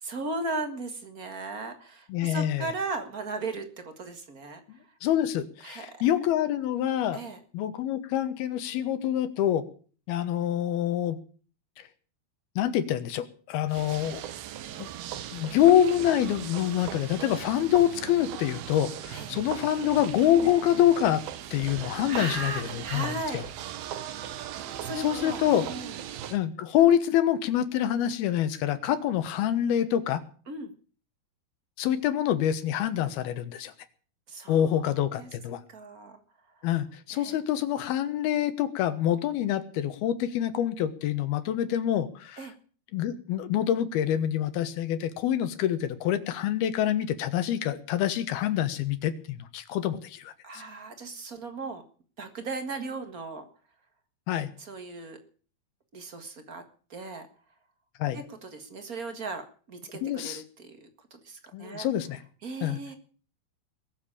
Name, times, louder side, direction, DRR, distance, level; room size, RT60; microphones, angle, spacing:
voice 1, 0.0-4.6 5.6-6.0 7.1-7.4 19.1-19.4 22.1-23.4 24.8-26.0 30.5-30.7 34.3-34.8 35.2-35.3 35.7-36.2 36.6-36.7 37.1-37.4 42.4-42.5 50.4-51.8 52.2-53.5 54.6-55.2 55.9-56.6 56.9-57.3 58.1-61.9 62.4-62.9, right 3 dB, 50° right, 7 dB, 1.0 m, -37 dB
voice 2, 2.1-2.7 4.7-7.2 7.5-9.6 10.1-11.2 12.6-14.2 14.8-14.9 15.3-21.2 21.5-23.4 25.0-25.6 26.3-30.2 31.8-33.7 34.5-35.6 36.6-42.4 42.9-50.6 54.3-54.5 58.0-58.2 60.0-60.4 61.5-62.2 62.6-62.8, left 11 dB, 80° left, 11 dB, 3.1 m, -26 dB
sound 1, 13.7-26.4, right 11 dB, 80° right, 3.1 m, -39 dB
21.5 x 7.3 x 8.7 m, 0.42 s
omnidirectional pair, 4.4 m